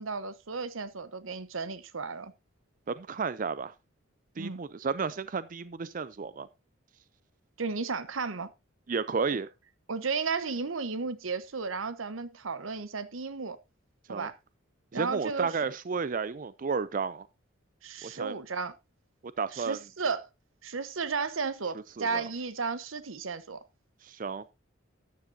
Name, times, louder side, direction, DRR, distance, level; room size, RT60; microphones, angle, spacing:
voice 1, 0.0-2.3 4.4-4.6 7.6-8.5 9.9-13.6 14.1-14.4 14.9-15.5 17.8-18.7 19.5-20.3 20.6-23.6, right 4 dB, 90° right, 0.9 m, -34 dB
voice 2, 2.9-3.7 4.4-6.5 8.9-9.5 14.1-14.3 14.9-17.3 18.0-18.4 19.4-19.8 22.0-22.3 24.0-24.5, right 5 dB, 40° right, 0.4 m, -32 dB
13.0 x 9.5 x 2.7 m
head